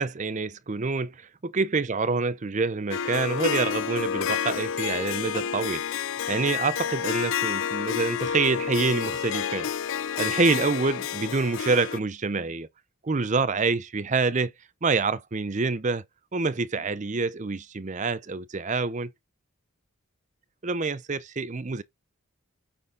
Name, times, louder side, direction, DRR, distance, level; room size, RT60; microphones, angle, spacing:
voice 1, 0.0-1.1 1.4-5.8 6.3-9.7 10.2-12.7 13.0-14.5 14.8-16.0 16.3-19.1 20.6-21.8, right 4 dB, 35° right, 0.6 m, -26 dB
Harp, 2.9-12.0, left 8 dB, 55° left, 0.3 m, -29 dB
8.8 x 4.2 x 3.7 m
head